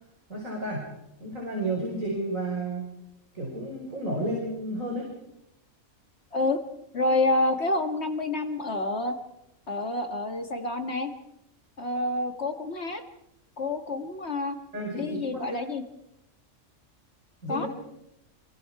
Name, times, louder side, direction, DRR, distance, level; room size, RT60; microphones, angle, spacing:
voice 1, 0.3-0.9 1.2-2.9 3.3-5.1 14.7-15.6 17.4-17.7, right 1 dB, 80° right, -1 dB, 5.6 m, -32 dB
voice 2, 6.9-9.1 9.7-11.1 11.8-13.0 13.6-14.6 15.0-15.8 17.5-17.7, left 2 dB, 55° left, 6 dB, 2.1 m, -28 dB
27.0 x 24.0 x 4.8 m, 0.85 s
omnidirectional pair, 1.4 m